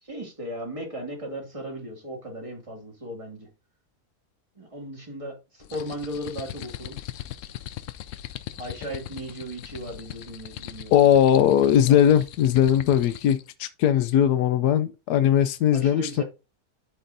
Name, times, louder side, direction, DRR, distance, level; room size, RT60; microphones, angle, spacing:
voice 1, 0.0-3.5 4.6-7.0 8.6-10.9 11.6-12.1 15.7-16.2, equal, 20° right, 2.3 m, -36 dB
sound 1, 5.6-13.5, left 12 dB, 70° left, 0.8 m, -40 dB
voice 2, 10.9-16.2, left 10 dB, 85° left, 1.1 m, -19 dB
12.5 x 4.4 x 2.6 m
omnidirectional pair, 1.6 m